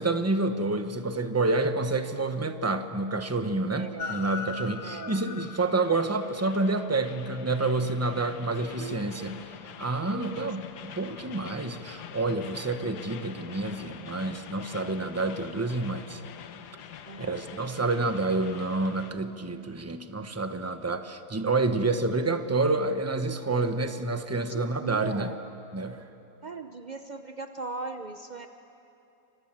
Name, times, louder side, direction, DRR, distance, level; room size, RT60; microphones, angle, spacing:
voice 1, 0.0-9.4 9.8-16.2 17.2-25.3 25.7-26.0, right 3 dB, 15° right, 8 dB, 0.6 m, -28 dB
voice 2, 3.7-4.2 4.8-5.2 8.8-9.4 10.1-10.6 17.1-17.5 24.5-25.5 26.4-28.5, right 4 dB, 70° right, 7 dB, 0.4 m, -39 dB
Train, 4.0-19.1, left 7 dB, 65° left, 1.4 m, -43 dB
29.5 x 25.5 x 7.5 m, 2.8 s
omnidirectional pair, 2.0 m